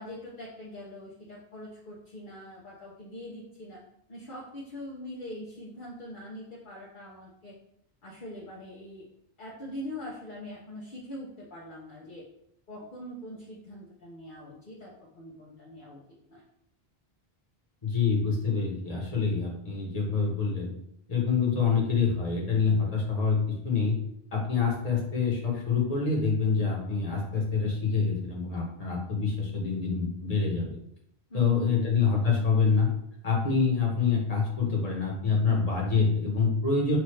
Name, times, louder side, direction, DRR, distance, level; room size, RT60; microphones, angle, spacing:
voice 1, 0.0-3.8 4.1-7.6 8.0-9.1 9.4-12.2 12.7-16.0 16.3-16.4 31.3-31.8, left 1 dB, 55° left, -6 dB, 1.0 m, -42 dB
voice 2, 17.8-20.7 21.1-24.0 24.3-30.8 31.3-32.9 33.2-37.0, left 5 dB, 35° left, -2 dB, 1.3 m, -26 dB
6.1 x 2.6 x 3.2 m, 0.74 s
omnidirectional pair, 1.1 m